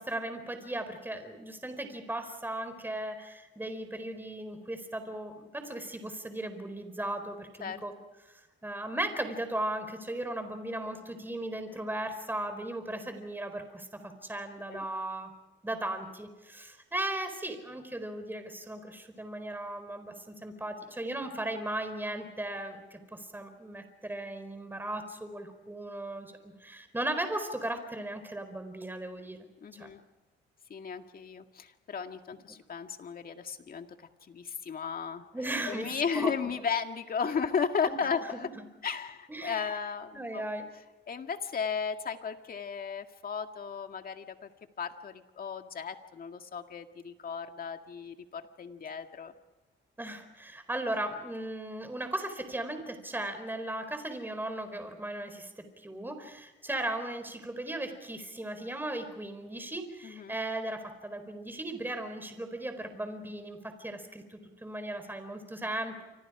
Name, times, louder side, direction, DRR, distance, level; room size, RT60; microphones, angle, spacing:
voice 1, 0.0-7.9 8.6-15.3 15.6-29.4 29.7-29.9 35.3-36.3 37.9-38.0 38.3-38.6 39.3-39.7 40.1-40.7 50.0-66.0, right 1 dB, 10° right, 8 dB, 4.2 m, -37 dB
voice 2, 29.6-30.0 30.7-35.2 35.7-38.5 38.8-40.5 41.1-44.5 44.8-49.3 60.0-60.3, left 6 dB, 45° left, 6 dB, 2.1 m, -35 dB
29.5 x 25.5 x 5.0 m, 1.1 s
cardioid pair, 90°, 20 cm